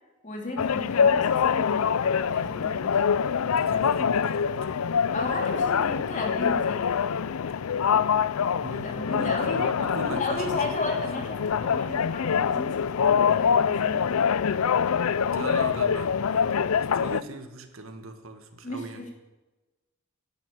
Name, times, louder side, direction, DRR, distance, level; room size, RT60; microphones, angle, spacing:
voice 1, 0.2-2.9 5.1-7.2 8.8-9.6 10.0-14.5 15.1-15.3 18.6-19.1, left 2 dB, 35° left, 1 dB, 2.8 m, -34 dB
sound 1, 0.6-17.2, left 7 dB, 80° left, 0.5 m, -25 dB
voice 2, 3.4-4.9 8.6-11.3 15.3-16.7 16.9-19.1, right 2 dB, 65° right, 6 dB, 1.8 m, -39 dB
11.5 x 10.5 x 9.1 m, 1.1 s
head